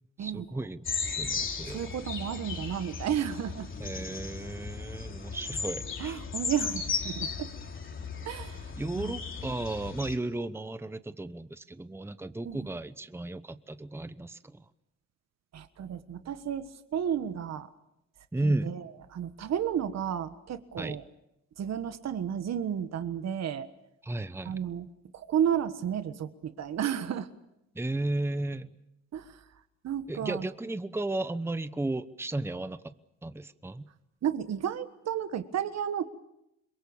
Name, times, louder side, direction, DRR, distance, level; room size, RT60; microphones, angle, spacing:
voice 1, 0.2-1.9 3.8-6.2 8.8-14.6 18.3-18.7 20.8-21.0 24.0-24.6 27.7-28.7 30.1-32.9 33.2-33.9, right 2 dB, 10° right, 13 dB, 1.0 m, -34 dB
sound 1, 0.8-10.2, left 5 dB, 40° left, 3.4 m, -36 dB
voice 2, 1.7-3.7 6.0-7.5 8.2-8.7 9.0-9.1 12.4-12.7 15.5-17.7 18.4-21.0 21.6-23.7 24.4-24.9 25.1-27.3 29.1-29.4 29.8-30.4 34.2-36.1, right 9 dB, 60° right, 10 dB, 1.5 m, -32 dB
27.0 x 22.5 x 7.2 m, 0.84 s
cardioid pair, 90°, 30 cm